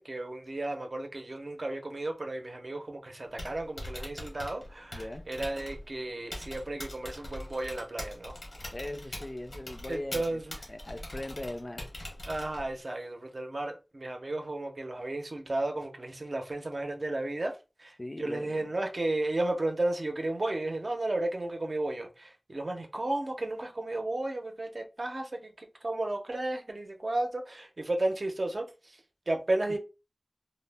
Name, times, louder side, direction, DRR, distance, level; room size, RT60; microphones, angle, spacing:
voice 1, 0.0-8.4 9.9-10.6 12.2-29.0 29.3-29.8, right 2 dB, 65° right, 0.6 m, -33 dB
Typing, 3.3-12.8, left 1 dB, 90° left, 0.9 m, -43 dB
voice 2, 4.9-5.2 8.7-10.4 10.7-11.9 18.0-18.7, left 1 dB, 40° left, 0.3 m, -39 dB
2.1 x 2.0 x 3.3 m
wide cardioid pair, 45°, 0 cm